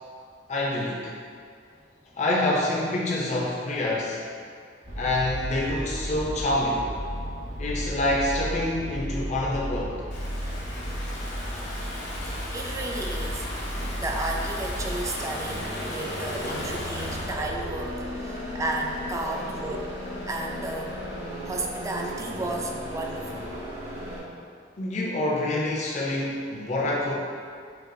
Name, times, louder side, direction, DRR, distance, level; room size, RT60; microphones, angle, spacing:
voice 1, 0.5-1.1 2.2-4.2 5.0-6.9 7.6-10.0 16.5-16.7 19.3-19.5 24.8-27.1, left 1 dB, 40° left, -4 dB, 0.5 m, -27 dB
sound 1, 4.8-24.2, equal, 85° right, 1.4 m, -34 dB
Stream / Ocean, 10.1-17.4, left 1 dB, 65° left, 1.0 m, -37 dB
voice 2, 12.5-13.5 14.0-19.9 20.3-21.1 21.4-23.5, right 2 dB, 15° right, 1 dB, 0.3 m, -33 dB
6.5 x 2.4 x 2.6 m, 2.2 s
head